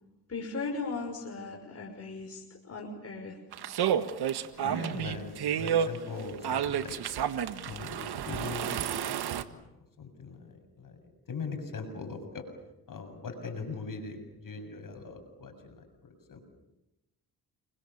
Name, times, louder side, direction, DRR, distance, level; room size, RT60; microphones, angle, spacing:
voice 1, 0.3-3.4 4.6-5.2, left 3 dB, 40° left, 1 dB, 5.9 m, -38 dB
sound 1, 3.5-9.4, right 9 dB, 80° right, 1.7 m, -30 dB
voice 2, 4.6-7.0 7.6-8.9 9.5-9.6 10.0-11.0 11.3-12.5 12.9-16.5, left 4 dB, 55° left, 6 dB, 7.3 m, -41 dB
30.0 x 24.0 x 7.3 m, 0.93 s
cardioid pair, 70°, 38 cm